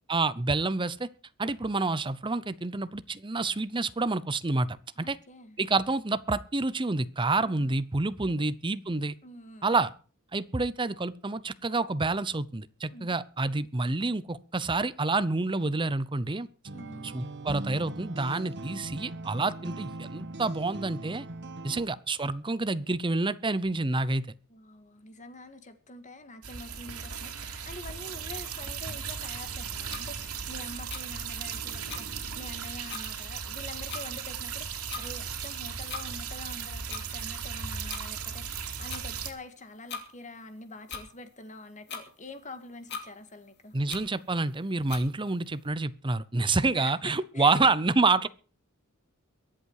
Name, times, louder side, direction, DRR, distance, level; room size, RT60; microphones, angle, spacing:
voice 1, 0.1-1.1 1.4-5.2 5.6-9.1 9.6-9.9 10.3-16.5 17.0-21.3 21.6-24.3 43.7-48.3, right 3 dB, 20° right, 0.7 m, -28 dB
voice 2, 5.0-5.6 7.4-7.7 8.3-8.4 9.2-9.7 12.9-13.2 16.7-17.2 21.7-21.9 24.5-43.7 46.6-46.9 47.3-47.6, left 2 dB, 35° left, 1.9 m, -46 dB
sound 1, 16.7-21.9, right 2 dB, 55° right, 1.4 m, -40 dB
sound 2, 26.4-39.3, right 7 dB, 85° right, 2.7 m, -37 dB
sound 3, 29.9-30.0 30.9-31.0 31.9-32.0 32.6-32.7 32.9-33.1 33.9-34.0 34.9-35.1 35.9-36.1 36.9-37.0 37.9-38.0 38.9-39.0 39.9-40.1 40.9-41.1 41.9-42.0 42.9-43.1 43.9-44.0 44.9-45.1, left 6 dB, 50° left, 2.7 m, -38 dB
22.5 x 8.3 x 4.8 m
head